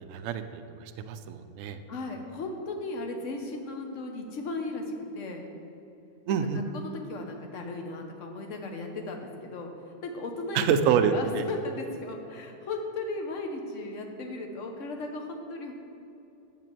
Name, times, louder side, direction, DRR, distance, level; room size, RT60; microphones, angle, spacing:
voice 1, 0.0-1.8 6.3-6.6 10.5-11.4, right 7 dB, 90° right, 8 dB, 0.7 m, -27 dB
voice 2, 1.7-5.4 6.7-15.7, left 2 dB, 50° left, 3 dB, 1.2 m, -36 dB
7.5 x 5.8 x 7.4 m, 2.9 s
omnidirectional pair, 2.0 m